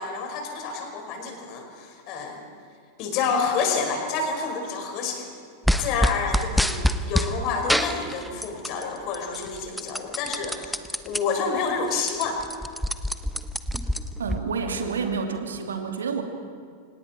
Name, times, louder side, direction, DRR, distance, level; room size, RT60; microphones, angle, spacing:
voice 1, 0.0-2.4 3.0-5.3 5.7-12.4, left 5 dB, 40° left, 3 dB, 5.0 m, -29 dB
sound 1, 5.7-7.3 7.7-8.8 9.1-11.2 11.6-11.7 12.0-14.4, equal, ahead, 1.1 m, -25 dB
voice 2, 14.2-16.2, right 5 dB, 70° right, 4 dB, 2.6 m, -29 dB
29.5 x 26.5 x 4.4 m, 2.1 s
figure-of-eight pair, 90°, 0 cm